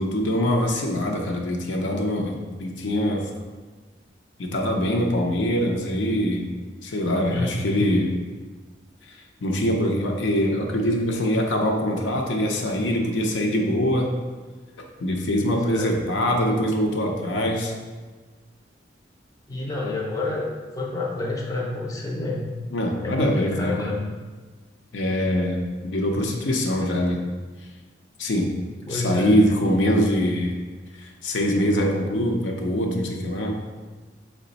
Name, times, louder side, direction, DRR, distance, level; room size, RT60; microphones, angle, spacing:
voice 1, 0.0-3.3 4.4-6.5 6.8-8.1 9.4-14.1 15.0-17.7 22.7-23.8 24.9-27.2 28.2-28.5 28.9-30.6 31.0-33.6, equal, 80° left, 1 dB, 0.6 m, -23 dB
voice 2, 7.3-7.8 15.5-15.9 19.5-22.5 23.0-24.0 28.9-29.4, left 2 dB, 20° left, -2 dB, 0.5 m, -29 dB
4.9 x 2.1 x 3.9 m, 1.3 s
head